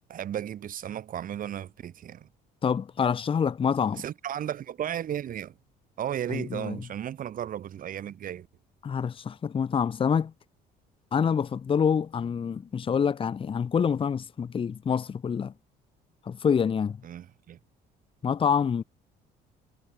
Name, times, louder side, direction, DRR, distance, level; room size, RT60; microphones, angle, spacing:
voice 1, 0.1-2.3 3.9-5.5 6.0-8.5 17.0-17.6, right 10 dB, 55° right, 3.1 m, -34 dB
voice 2, 2.6-4.0 6.3-6.8 8.8-10.3 11.1-15.5 16.3-17.0 18.2-18.8, left 7 dB, 30° left, 0.9 m, -26 dB
cardioid pair, 110°, 17 cm